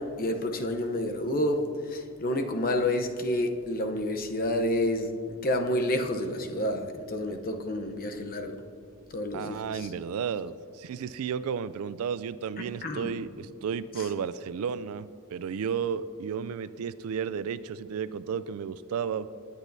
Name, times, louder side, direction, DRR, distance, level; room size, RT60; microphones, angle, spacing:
voice 1, 0.0-5.1 5.4-8.6 9.1-9.9 12.8-13.1 14.0-14.1, left 1 dB, 40° left, 5 dB, 0.8 m, -29 dB
voice 2, 9.3-19.3, right 7 dB, 70° right, 15 dB, 0.3 m, -33 dB
18.5 x 8.2 x 2.7 m, 2.4 s
head